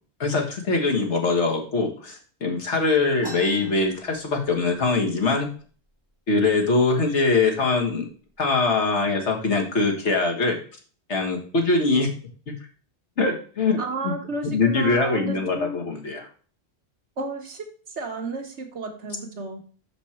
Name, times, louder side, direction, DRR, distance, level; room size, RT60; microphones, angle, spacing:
voice 1, 0.2-5.5 6.3-8.1 8.4-10.6 11.1-12.1 12.5-12.6 13.2-13.8 14.0-14.1 14.4-16.2, left 3 dB, 85° left, 1 dB, 1.9 m, -22 dB
sound 1, 3.2-4.8 5.2-5.3 5.5-6.1 6.7-6.9 7.6-7.8 8.2-8.7, equal, 20° left, 3.1 m, -43 dB
voice 2, 13.8-15.8 17.2-19.6, right 3 dB, 85° right, 3 dB, 1.7 m, -32 dB
6.3 x 5.3 x 4.3 m, 0.41 s
omnidirectional pair, 1.1 m